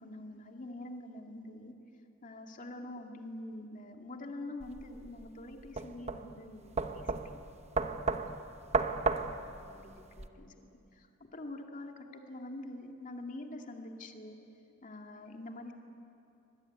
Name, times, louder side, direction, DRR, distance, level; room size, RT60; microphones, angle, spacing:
voice 1, 0.0-1.7 2.2-7.5 9.0-14.4 14.8-15.7, left 1 dB, 40° left, 3 dB, 2.3 m, -46 dB
sound 1, 4.6-10.3, right 3 dB, 35° right, 1.0 m, -34 dB
25.0 x 21.0 x 9.5 m, 2.7 s
head